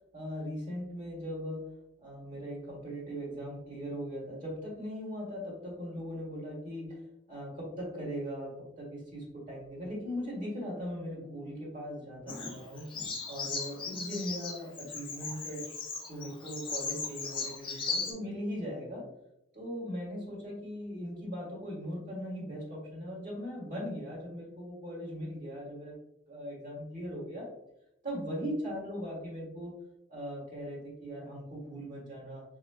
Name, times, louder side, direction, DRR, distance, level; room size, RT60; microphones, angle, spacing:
voice 1, 0.1-1.7 2.0-7.0 7.3-12.9 13.3-15.6 16.1-19.0 19.5-25.9 26.3-27.5 28.0-29.8 30.1-32.4, equal, 40° right, -4 dB, 1.4 m, -39 dB
Bird vocalization bird call bird song, 12.3-18.1, left 4 dB, 25° left, 0.5 m, -37 dB
4.9 x 2.2 x 2.3 m, 0.85 s
head